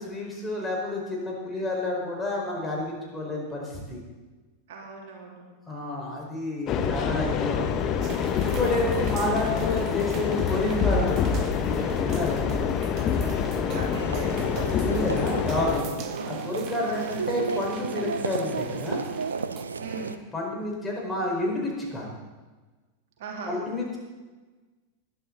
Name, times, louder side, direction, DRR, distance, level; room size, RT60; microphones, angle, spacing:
voice 1, 0.0-4.0 5.7-8.0 8.4-12.6 13.7-13.8 14.8-15.9 16.2-19.0 20.3-22.1 23.5-24.0, left 1 dB, 10° left, -2 dB, 4.8 m, -30 dB
voice 2, 4.7-5.4 12.4-14.4 16.0-16.2 16.9-17.1 19.8-20.2 23.2-23.6, right 3 dB, 55° right, -1 dB, 3.3 m, -40 dB
sound 1, 6.7-15.8, left 7 dB, 35° left, 1.2 m, -26 dB
sound 2, 8.0-19.6, right 9 dB, 35° right, 1.0 m, -43 dB
sound 3, 14.0-20.2, right 5 dB, 75° right, 0.7 m, -33 dB
21.0 x 12.0 x 4.0 m, 1.3 s
figure-of-eight pair, 90°, 0 cm